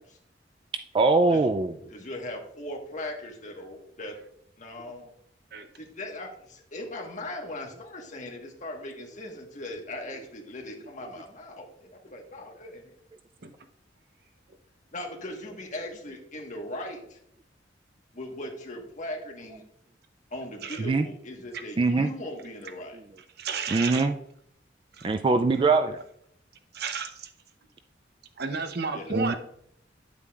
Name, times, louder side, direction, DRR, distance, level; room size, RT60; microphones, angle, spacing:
voice 1, 0.9-1.7 20.9-21.1 21.8-22.1 23.7-24.2 25.0-26.0 29.1-29.4, right 3 dB, 30° right, 8 dB, 0.3 m, -22 dB
voice 2, 1.9-4.1 4.6-5.1 5.8-12.8 14.9-17.2 18.1-19.6 20.3-23.0 28.9-29.2, left 1 dB, 45° left, 2 dB, 1.4 m, -39 dB
voice 3, 23.4-24.1 25.0-25.1 26.7-27.3 28.4-29.4, right 5 dB, 60° right, 8 dB, 0.8 m, -32 dB
9.3 x 8.4 x 2.4 m, 0.69 s
head